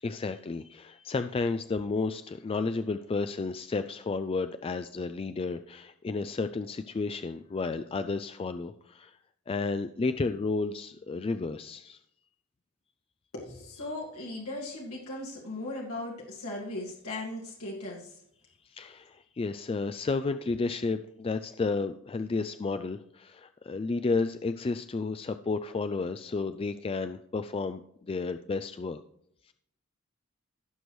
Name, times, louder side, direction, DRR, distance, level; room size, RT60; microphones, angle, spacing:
voice 1, 0.0-9.2 9.5-12.0 18.6-29.0 29.5-29.6, left 3 dB, 25° left, 10 dB, 0.3 m, -32 dB
voice 2, 13.3-18.2, left 2 dB, 80° left, -2 dB, 2.0 m, -38 dB
16.5 x 6.3 x 3.1 m, 0.72 s
head